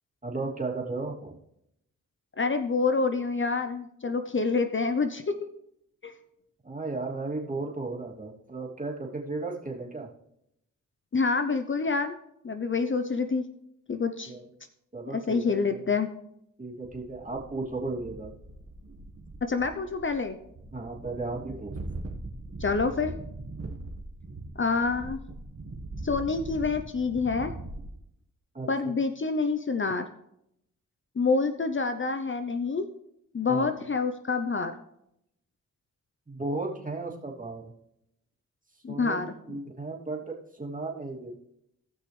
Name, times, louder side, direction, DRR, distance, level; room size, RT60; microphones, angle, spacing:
voice 1, 0.2-1.4 6.6-10.1 14.3-14.4 14.9-15.9 16.6-18.3 20.7-21.7 28.5-28.7 33.5-33.7 36.3-37.7 38.9-39.2 39.5-41.3, right 3 dB, 25° right, -2 dB, 2.9 m, -35 dB
voice 2, 2.4-5.3 6.0-6.1 11.1-12.1 12.4-13.5 13.9-14.3 15.1-16.1 19.4-20.4 22.6-23.1 24.6-25.2 26.0-27.5 28.7-30.1 31.2-32.9 33.3-34.7 38.8-39.6, left 4 dB, 40° left, 8 dB, 0.8 m, -27 dB
sound 1, 16.8-28.0, right 2 dB, 50° right, 1.6 m, -41 dB
18.0 x 6.0 x 3.4 m, 0.77 s
cardioid pair, 60°, 32 cm